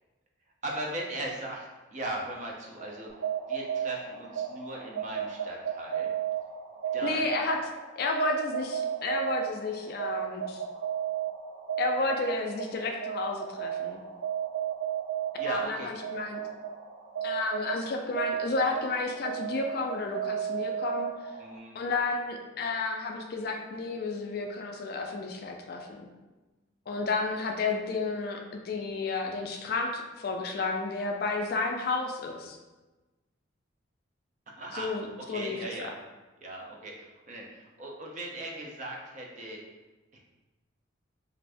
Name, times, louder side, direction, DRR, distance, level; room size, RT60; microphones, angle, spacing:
voice 1, 0.6-1.7 1.9-3.1 3.5-6.1 6.9-7.3 15.4-15.9 21.4-21.8 34.5-35.9 36.4-39.6 40.1-40.2, right 1 dB, 35° right, -1 dB, 0.4 m, -38 dB
sound 1, 3.1-21.6, right 9 dB, 85° right, 1.1 m, -34 dB
voice 2, 7.0-7.6 8.0-10.6 11.8-14.0 15.5-16.4 17.2-21.1 21.7-26.1 26.9-32.6 34.7-35.9, left 3 dB, 50° left, 3 dB, 0.3 m, -32 dB
2.5 x 2.5 x 3.3 m, 1.2 s
head